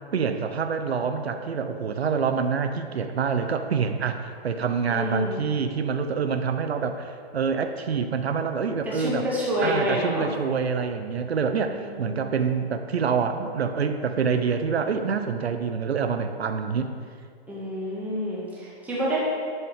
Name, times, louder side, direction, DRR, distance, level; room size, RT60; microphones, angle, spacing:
voice 1, 0.1-9.3 9.6-16.9, right 6 dB, 85° right, 7 dB, 0.8 m, -26 dB
voice 2, 4.9-5.4 8.8-10.3 11.8-12.3 17.5-19.2, equal, 5° right, -7 dB, 1.7 m, -28 dB
10.5 x 6.5 x 5.0 m, 2.1 s
hypercardioid pair, 155°, 31 cm